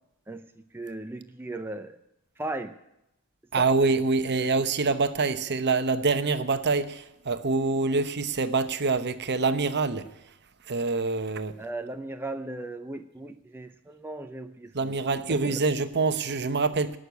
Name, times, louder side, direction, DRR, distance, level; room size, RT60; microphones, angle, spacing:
voice 1, 0.3-2.0 2.4-2.7 3.6-3.7 11.6-15.0 15.3-15.6, right 2 dB, 10° right, 0.7 m, -37 dB
voice 2, 3.5-10.1 10.7-11.5 14.7-17.0, right 3 dB, 50° right, 1.0 m, -25 dB
18.5 x 6.6 x 9.4 m
head